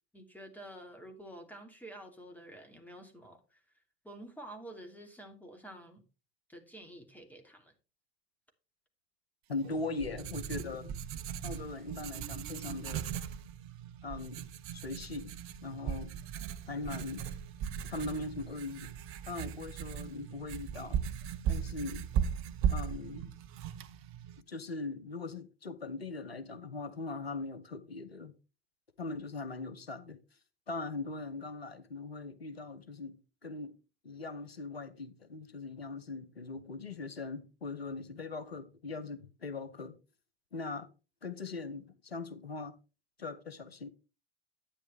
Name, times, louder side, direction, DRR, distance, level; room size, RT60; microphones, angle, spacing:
voice 1, 0.1-3.6 4.0-6.0 6.5-7.7, right 1 dB, 5° left, 2.8 m, -49 dB
voice 2, 9.5-10.9 11.4-13.1 14.0-14.4 14.7-16.2 16.7-17.3 17.8-18.9 19.3-21.0 21.5-22.1 22.7-23.3 24.5-28.3 29.0-30.4 30.7-33.2 33.4-33.8 34.0-40.0 40.5-40.9 41.2-42.7 43.2-43.9, left 3 dB, 85° left, 0.8 m, -40 dB
Writing, 9.6-24.4, right 8 dB, 45° right, 0.9 m, -38 dB
11.5 x 9.1 x 3.4 m
figure-of-eight pair, 70°, 30 cm